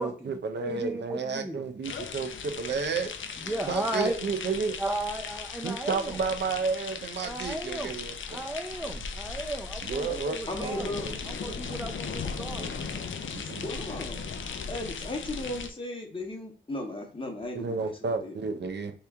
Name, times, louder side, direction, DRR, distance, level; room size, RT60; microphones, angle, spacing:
voice 1, 0.0-3.1 3.7-4.8 5.6-8.4 9.8-11.1 11.4-11.7 12.6-12.7 13.3-13.7 17.5-18.9, right 5 dB, 60° right, 6 dB, 0.5 m, -32 dB
voice 2, 0.6-1.7 3.4-4.2 4.8-6.2 7.2-7.9 8.3-10.9 11.3-12.7, right 1 dB, 5° right, 2 dB, 0.4 m, -35 dB
sound 1, 1.8-15.7, left 5 dB, 75° left, 0.5 m, -37 dB
voice 3, 10.5-11.1 13.6-14.2 14.7-18.3, left 1 dB, 25° left, 2 dB, 0.8 m, -36 dB
3.3 x 3.0 x 3.5 m, 0.41 s
wide cardioid pair, 145°, 20 cm